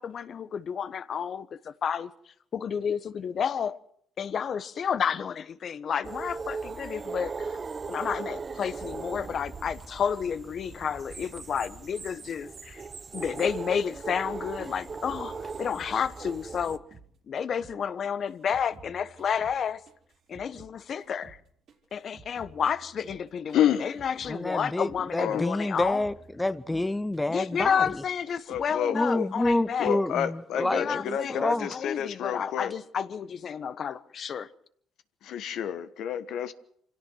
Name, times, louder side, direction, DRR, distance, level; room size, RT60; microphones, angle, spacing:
voice 1, 0.0-2.1 2.5-3.8 4.2-7.6 7.9-12.8 13.1-16.8 17.3-19.8 20.3-21.4 21.9-26.0 27.3-29.9 30.7-34.5, left 7 dB, 55° left, 1.1 m, -31 dB
sound 1, 6.0-16.8, right 4 dB, 35° right, 1.0 m, -38 dB
sound 2, 15.1-17.8 18.0-20.7 21.0-24.4 24.6-25.0 25.3-28.0 28.3-28.7 28.9-29.6, right 4 dB, 60° right, 3.8 m, -53 dB
voice 2, 23.5-23.9 25.2-25.4 28.5-29.3 29.8-32.7 35.2-36.5, left 10 dB, 70° left, 1.3 m, -29 dB
voice 3, 24.3-28.0 28.9-31.8, left 1 dB, 15° left, 0.7 m, -28 dB
25.5 x 17.0 x 6.3 m
supercardioid pair, 70°, 0 cm